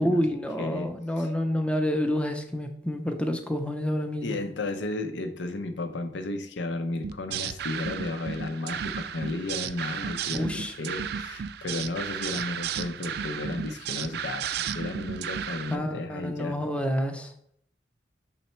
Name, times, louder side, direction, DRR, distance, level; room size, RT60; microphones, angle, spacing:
voice 1, 0.0-4.4 10.3-10.7 15.7-17.6, equal, 5° left, 5 dB, 0.5 m, -28 dB
voice 2, 0.6-1.3 4.2-16.6, left 2 dB, 80° left, 8 dB, 0.7 m, -33 dB
sound 1, 7.0-15.8, right 8 dB, 60° right, 0.3 m, -34 dB
5.6 x 4.1 x 4.3 m, 0.68 s
head